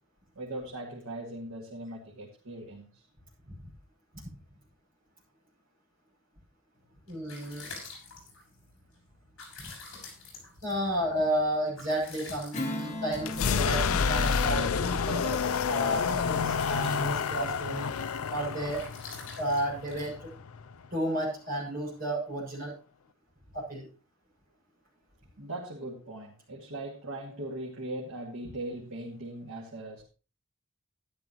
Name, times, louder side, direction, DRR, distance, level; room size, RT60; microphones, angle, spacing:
voice 1, 0.4-3.1 25.4-30.0, right 1 dB, 90° right, -3 dB, 2.2 m, -39 dB
sound 1, 6.8-20.8, left 4 dB, 60° left, 6.2 m, -49 dB
voice 2, 7.1-7.7 9.6-9.7 10.6-15.4 15.7-17.9 18.3-18.9 19.4-20.3 20.9-22.7 23.5-23.9, right 1 dB, 40° right, -4 dB, 6.9 m, -32 dB
Strum, 12.5-17.4, left 1 dB, 35° left, 1.8 m, -41 dB
sound 2, 13.2-20.9, left 6 dB, 85° left, 0.5 m, -29 dB
12.5 x 11.5 x 3.0 m, 0.34 s
head